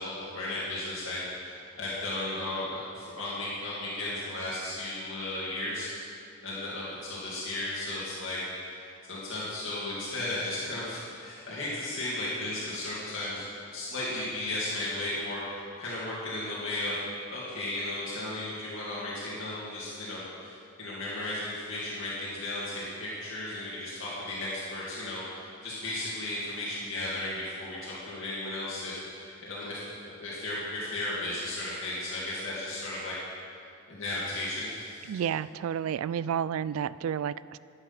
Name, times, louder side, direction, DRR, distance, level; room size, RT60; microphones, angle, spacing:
voice 1, 0.0-8.8 9.1-13.4 13.7-17.0 17.3-29.8 30.0-33.2 33.9-35.2, left 1 dB, 65° left, -8 dB, 2.5 m, -35 dB
voice 2, 35.1-37.6, right 8 dB, 85° right, 17 dB, 0.3 m, -31 dB
12.0 x 8.0 x 5.8 m, 2.4 s
head